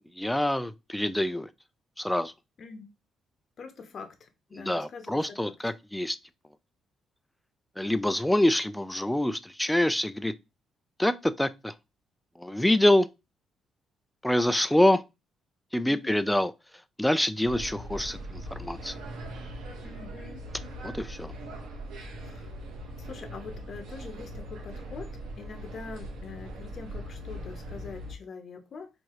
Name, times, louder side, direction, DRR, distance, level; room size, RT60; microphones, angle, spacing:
voice 1, 0.2-1.5 2.0-2.3 4.5-6.2 7.8-10.3 11.0-11.7 12.4-13.1 14.2-15.0 15.7-16.5 17.0-19.0 20.8-21.3, left 1 dB, 5° left, 0.4 m, -26 dB
voice 2, 3.6-5.5 15.9-16.2 19.8-20.5 22.0-22.6 23.0-28.9, left 5 dB, 50° left, 0.8 m, -44 dB
sound 1, 17.4-28.1, right 1 dB, 90° right, 1.1 m, -40 dB
4.7 x 2.7 x 3.0 m
cardioid pair, 90°, 0 cm